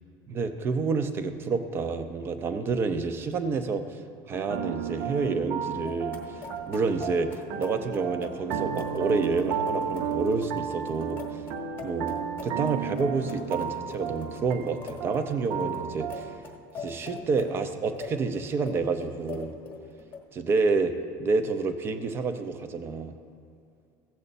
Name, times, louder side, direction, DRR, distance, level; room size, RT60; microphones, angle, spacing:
voice 1, 0.3-4.0 4.3-11.4 11.8-12.2 12.4-16.4 16.8-19.5 20.3-20.9 21.2-23.2, right 4 dB, 25° right, 9 dB, 0.5 m, -29 dB
sound 1, 4.3-16.4, right 8 dB, 65° right, 0.6 m, -33 dB
sound 2, 5.8-20.2, left 4 dB, 20° left, 1.0 m, -44 dB
15.0 x 7.6 x 4.1 m, 2.4 s
cardioid pair, 175°, 9 cm